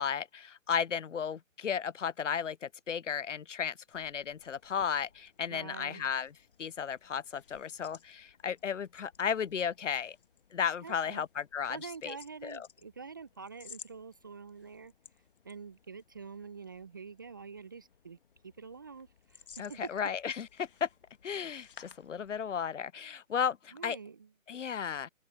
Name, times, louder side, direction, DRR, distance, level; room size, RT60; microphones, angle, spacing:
voice 1, 0.0-6.3 6.6-10.2 10.5-11.8 12.0-12.2 12.4-12.7 19.6-20.9 21.2-24.0 24.5-25.1, left 7 dB, 65° left, 0.6 m, -34 dB
sound 1, 3.8-22.7, left 7 dB, 40° left, 1.5 m, -59 dB
voice 2, 5.5-6.1 10.8-11.2 11.7-14.9 15.4-18.2 18.4-19.9 23.7-24.3, right 5 dB, 15° right, 0.7 m, -46 dB
open air
figure-of-eight pair, 150°, 41 cm